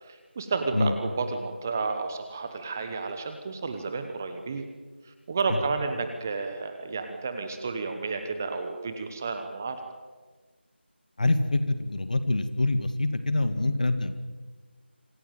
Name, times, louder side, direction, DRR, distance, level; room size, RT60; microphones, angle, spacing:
voice 1, 0.0-4.6 5.0-9.8, right 4 dB, 15° right, 7 dB, 0.9 m, -31 dB
voice 2, 11.2-14.1, left 2 dB, 45° left, 10 dB, 2.0 m, -25 dB
26.0 x 16.5 x 9.1 m, 1.4 s
figure-of-eight pair, 170°, 6 cm